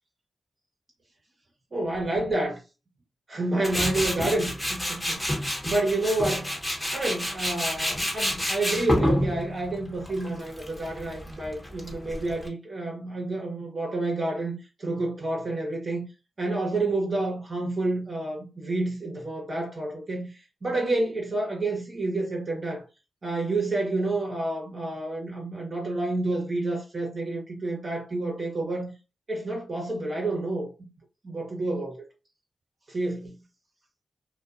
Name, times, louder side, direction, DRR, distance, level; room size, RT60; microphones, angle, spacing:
voice 1, 1.7-2.6 3.3-6.5 6.9-14.5 14.8-16.0 16.4-20.3 20.6-22.8 23.2-28.9 29.3-30.7 31.2-32.1 32.9-33.4, right 2 dB, 45° right, 1.0 m, -29 dB
Tools, 3.6-12.5, equal, 10° left, 0.9 m, -29 dB
2.4 x 2.3 x 2.5 m
cardioid pair, 60°, 0 cm